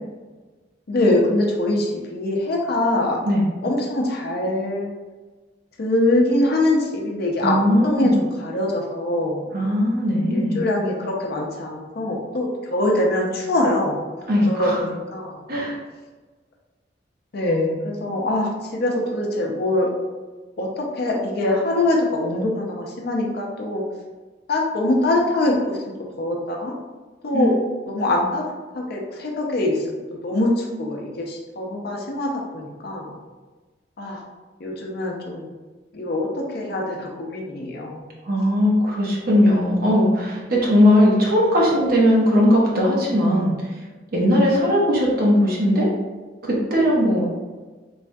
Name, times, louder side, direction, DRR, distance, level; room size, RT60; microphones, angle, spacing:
voice 1, 0.9-3.2 3.6-4.9 5.8-7.5 7.8-9.5 10.3-14.0 14.4-15.4 17.3-19.9 20.6-23.8 24.5-26.7 27.2-27.5 27.8-28.4 28.7-33.1 34.0-34.2 34.6-35.5 35.9-38.0, left 1 dB, 55° left, -1 dB, 0.5 m, -23 dB
voice 2, 7.4-8.1 9.5-10.6 14.3-14.8 15.5-15.8 27.3-27.5 38.2-43.5 44.1-45.9 46.4-47.3, equal, 55° right, -3 dB, 0.8 m, -18 dB
3.2 x 2.2 x 2.6 m, 1.3 s
head